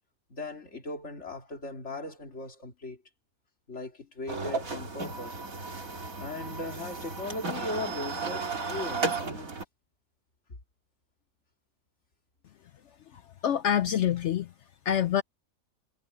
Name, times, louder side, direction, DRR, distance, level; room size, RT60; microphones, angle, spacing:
voice 1, 0.3-3.0 3.7-5.4 6.2-9.5, left 2 dB, 50° left, 2.8 m, -38 dB
sound 1, 4.3-9.7, right 4 dB, 60° right, 3.2 m, -34 dB
voice 2, 13.4-14.5 14.9-15.2, left 10 dB, 65° left, 0.7 m, -25 dB
omnidirectional pair, 1.6 m